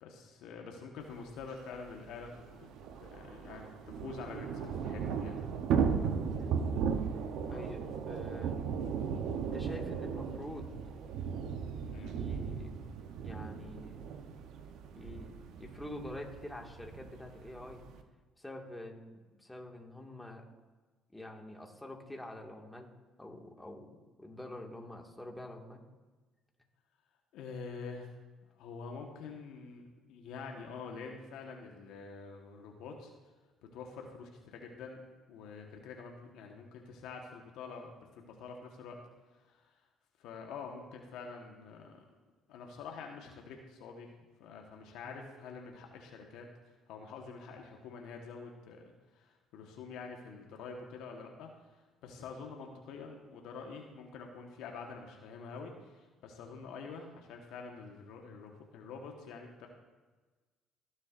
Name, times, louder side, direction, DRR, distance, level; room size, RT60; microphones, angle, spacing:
voice 1, 0.0-2.7 3.0-5.4 7.5-7.7 11.9-12.1 27.3-28.1 28.6-33.1 33.6-35.0 35.3-39.0 39.5-39.6 40.2-42.1 42.5-44.1 44.4-46.5 46.9-51.5 52.0-59.7, left 5 dB, 75° left, 2 dB, 1.3 m, -46 dB
Thunder / Rain, 1.4-1.5 1.7-1.8 2.1-18.0, right 6 dB, 70° right, 0.8 m, -36 dB
voice 2, 7.5-7.8 8.1-8.6 9.5-10.7 12.0-12.8 13.2-14.0 14.9-15.3 15.6-17.8 18.4-20.4 21.1-22.9 23.2-25.8 45.0-45.1, left 1 dB, 10° left, 0 dB, 2.0 m, -46 dB
18.5 x 7.2 x 2.6 m, 1.3 s
supercardioid pair, 65°, 0 cm